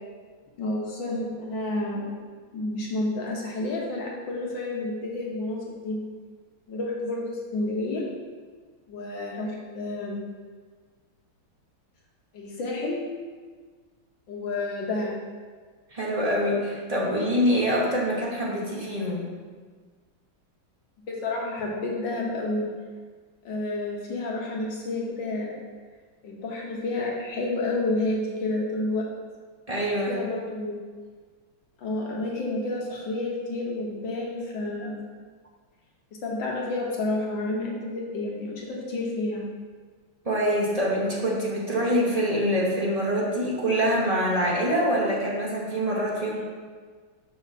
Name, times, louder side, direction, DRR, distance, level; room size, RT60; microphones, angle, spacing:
voice 1, 0.6-2.0 2.5-6.0 6.7-8.1 8.9-10.2 12.3-13.0 14.3-15.1 21.1-22.7 23.5-25.5 26.2-29.1 30.1-30.7 31.8-35.0 36.2-39.4, left 2 dB, 70° left, -2 dB, 1.8 m, -30 dB
voice 2, 15.9-19.4 29.7-30.2 40.2-46.4, equal, 25° right, -5 dB, 0.8 m, -25 dB
6.0 x 5.5 x 4.1 m, 1.5 s
omnidirectional pair, 2.1 m